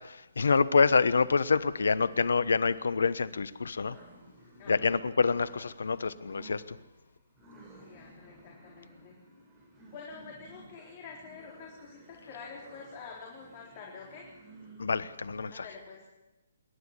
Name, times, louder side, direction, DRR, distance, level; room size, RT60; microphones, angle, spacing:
voice 1, 0.0-4.0 4.7-6.8 14.8-15.6, left 4 dB, 70° left, 17 dB, 1.1 m, -27 dB
sound 1, 2.1-15.5, right 2 dB, 20° right, 7.9 m, -56 dB
voice 2, 4.6-5.0 7.8-9.3 9.9-14.2 15.5-16.0, left 5 dB, 35° left, -2 dB, 4.1 m, -47 dB
27.0 x 12.0 x 8.3 m, 1.1 s
figure-of-eight pair, 140°, 0 cm